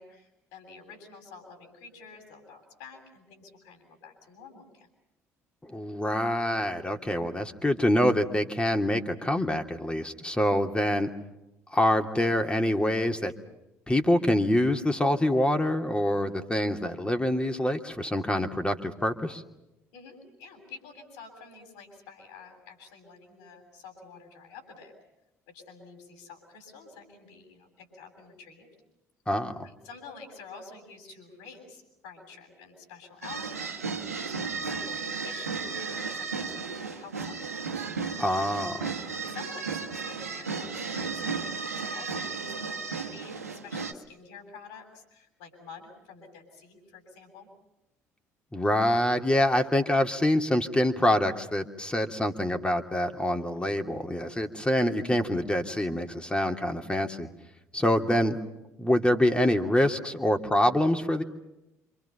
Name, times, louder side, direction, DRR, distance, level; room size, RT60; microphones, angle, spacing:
voice 1, 0.0-4.9 19.9-24.9 25.5-28.7 29.6-33.6 34.0-37.9 39.0-47.5, left 4 dB, 70° left, 3 dB, 7.9 m, -49 dB
voice 2, 5.6-11.1 11.7-13.3 13.9-19.4 29.3-29.5 38.2-38.9 48.5-57.3 57.7-58.4 58.8-61.2, left 1 dB, 10° left, 5 dB, 2.8 m, -25 dB
sound 1, 33.2-43.9, right 5 dB, 85° right, 1.5 m, -34 dB
29.0 x 27.5 x 5.7 m, 0.91 s
figure-of-eight pair, 50°, 8 cm